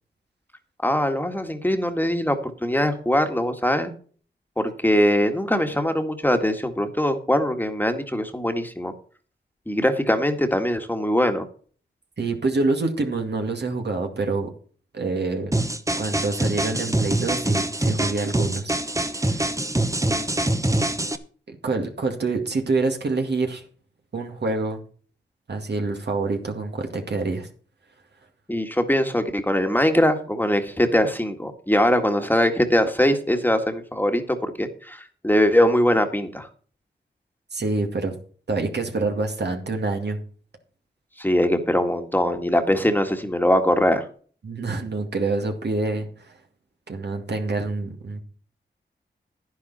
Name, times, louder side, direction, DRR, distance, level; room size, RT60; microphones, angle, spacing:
voice 1, 0.8-3.9 4.6-8.9 9.7-11.4 20.0-20.2 28.5-36.5 41.2-44.0, equal, 10° left, 6 dB, 1.8 m, -22 dB
voice 2, 12.2-14.5 14.9-15.5 16.0-18.7 19.2-19.5 21.5-23.6 24.1-24.8 25.5-27.5 37.5-38.2 38.5-40.2 44.4-46.3 46.9-48.2, right 3 dB, 60° right, 4 dB, 2.2 m, -26 dB
sound 1, 15.5-21.2, right 1 dB, 15° right, 1.1 m, -24 dB
10.5 x 10.5 x 4.2 m, 0.43 s
cardioid pair, 55°, 19 cm